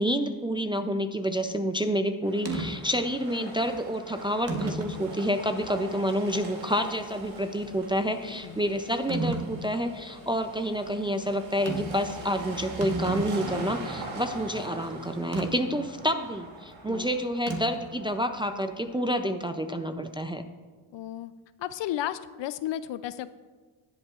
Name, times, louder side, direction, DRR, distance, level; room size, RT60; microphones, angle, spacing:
voice 1, 0.0-20.4, equal, 10° right, 7 dB, 0.3 m, -29 dB
sound 1, 2.2-19.2, right 2 dB, 70° right, 2.6 m, -43 dB
sound 2, 2.5-2.7 3.6-3.7 4.5-5.0 5.6-5.7 9.1-9.5 11.7-12.0 12.3-12.4 12.7-13.7 15.3-15.5 17.5-17.9, right 3 dB, 30° right, 1.2 m, -32 dB
voice 2, 8.2-8.6 16.9-17.2 20.9-21.3 21.6-23.3, left 12 dB, 60° left, 14 dB, 0.5 m, -34 dB
18.0 x 8.1 x 2.4 m, 1.4 s
cardioid pair, 105°, 49 cm